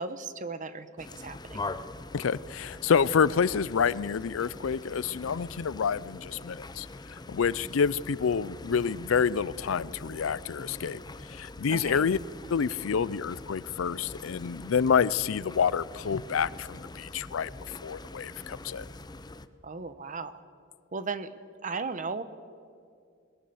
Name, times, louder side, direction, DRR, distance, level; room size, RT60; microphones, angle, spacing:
voice 1, 0.0-1.6 11.7-12.0 19.6-20.4 20.9-21.3 21.6-22.2, right 4 dB, 40° right, 1.0 m, -36 dB
sound 1, 1.0-19.5, left 2 dB, 20° left, 0.7 m, -43 dB
voice 2, 2.1-11.0 11.3-12.2 12.5-17.5 17.8-18.9, left 6 dB, 75° left, 0.5 m, -28 dB
22.0 x 20.5 x 7.0 m
head